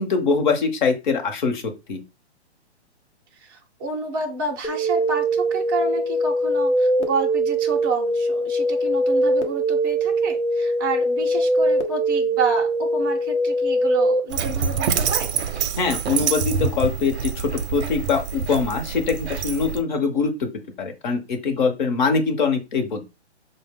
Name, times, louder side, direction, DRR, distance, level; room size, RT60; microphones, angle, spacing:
voice 1, 0.0-1.6 1.9-2.0 15.8-20.5 20.8-23.0, left 5 dB, 45° left, 5 dB, 0.8 m, -23 dB
voice 2, 3.4-15.3, right 3 dB, 20° right, 0 dB, 0.4 m, -29 dB
sound 1, 4.6-14.2, right 1 dB, 90° left, 0.9 m, -22 dB
Dog, 14.3-19.8, right 6 dB, 70° right, 0.5 m, -26 dB
4.7 x 2.1 x 3.4 m, 0.27 s
hypercardioid pair, 140°, 34 cm